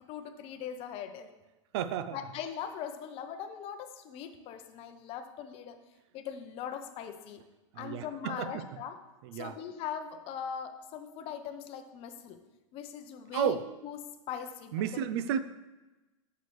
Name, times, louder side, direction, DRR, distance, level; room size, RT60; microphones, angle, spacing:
voice 1, 0.1-1.3 2.1-5.8 6.1-7.4 7.7-9.0 9.3-12.4 12.7-13.6 13.8-14.0 14.3-15.0 15.3-15.4, left 8 dB, 35° left, 8 dB, 0.8 m, -40 dB
voice 2, 1.7-2.2 7.7-8.6 9.2-9.6 13.3-13.6 14.7-15.4, right 8 dB, 55° right, 13 dB, 0.5 m, -32 dB
9.0 x 6.9 x 3.2 m, 1.1 s
hypercardioid pair, 120°, 16 cm